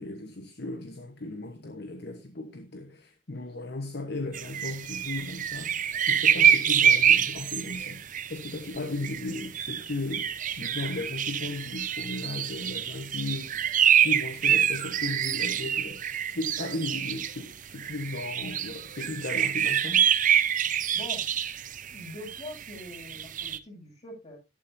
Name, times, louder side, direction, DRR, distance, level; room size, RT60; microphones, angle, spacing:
voice 1, 0.0-8.0 8.3-20.1, left 2 dB, 55° left, 1.1 m, -36 dB
sound 1, 4.3-17.4 17.8-23.6, right 9 dB, 40° right, 0.7 m, -26 dB
voice 2, 20.9-21.3 21.9-24.4, left 1 dB, 35° left, 7.1 m, -43 dB
12.5 x 12.0 x 2.7 m
head